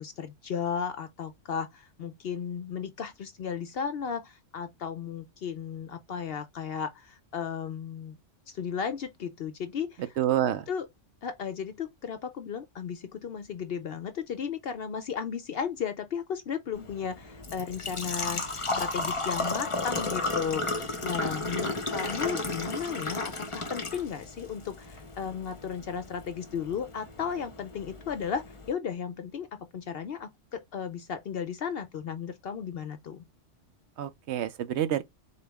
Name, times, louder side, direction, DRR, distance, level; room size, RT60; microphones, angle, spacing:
voice 1, 0.0-8.2 8.5-10.1 10.7-10.9 11.2-33.3, left 7 dB, 60° left, 0.7 m, -35 dB
voice 2, 10.2-10.6 34.0-35.0, right 11 dB, 70° right, 0.9 m, -27 dB
Engine / Trickle dribble / Fill (with liquid), 16.7-28.7, left 2 dB, 30° left, 0.8 m, -34 dB
4.1 x 3.0 x 3.4 m
omnidirectional pair, 1.2 m